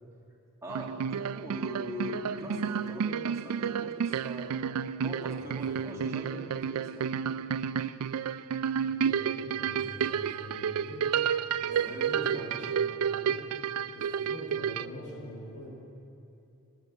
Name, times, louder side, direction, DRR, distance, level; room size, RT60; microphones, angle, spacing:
voice 1, 0.6-4.7 5.0-7.1 11.7-12.5, equal, 15° right, -3 dB, 2.3 m, -42 dB
sound 1, 0.7-14.9, right 7 dB, 90° right, 0.4 m, -31 dB
voice 2, 5.4-6.2 8.8-11.1 11.6-13.4 13.9-15.7, equal, 90° left, -2 dB, 3.5 m, -44 dB
11.5 x 10.5 x 8.2 m, 2.8 s
head